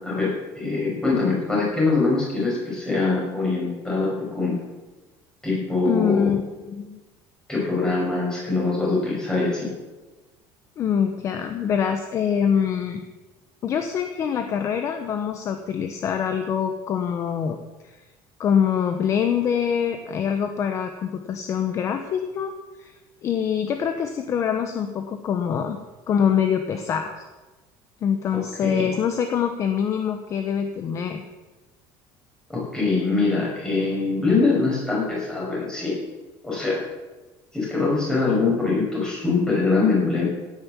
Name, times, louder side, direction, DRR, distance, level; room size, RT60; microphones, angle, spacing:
voice 1, 0.0-4.6 5.4-6.2 7.5-9.7 28.6-28.8 32.5-36.0 36.4-36.8 37.5-40.2, left 3 dB, 5° left, -4 dB, 6.0 m, -23 dB
voice 2, 5.8-6.4 6.7-7.0 10.8-13.0 13.6-17.6 17.8-18.0 18.4-22.5 22.8-22.9 23.2-25.8 26.1-27.1 28.0-31.2, left 8 dB, 30° left, 7 dB, 1.0 m, -24 dB
16.5 x 9.9 x 7.5 m, 1.2 s
cardioid pair, 180°, 10 cm